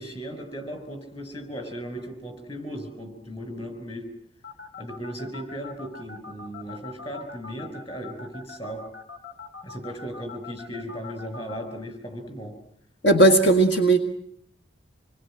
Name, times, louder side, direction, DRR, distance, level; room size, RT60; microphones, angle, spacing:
voice 1, 0.0-4.1 4.8-8.9 9.6-12.5, equal, 30° left, 7 dB, 6.0 m, -36 dB
sound 1, 4.4-11.6, left 5 dB, 90° left, 4.4 m, -41 dB
voice 2, 13.0-14.0, right 2 dB, 70° left, 7 dB, 1.8 m, -17 dB
27.0 x 21.5 x 9.0 m, 0.69 s
head